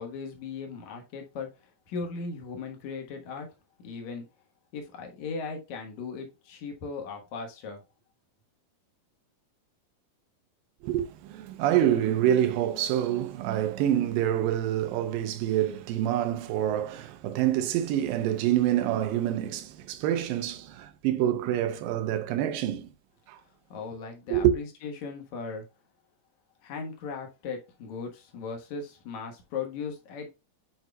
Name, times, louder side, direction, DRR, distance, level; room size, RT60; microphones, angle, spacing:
voice 1, 0.0-1.5 1.9-3.5 3.8-4.2 4.7-7.8 23.7-25.6 26.6-30.3, left 5 dB, 60° left, 2.5 m, -37 dB
voice 2, 10.8-22.9 23.3-23.4 24.3-24.5, right 11 dB, 85° right, 2.5 m, -26 dB
9.3 x 4.8 x 2.3 m
omnidirectional pair, 4.0 m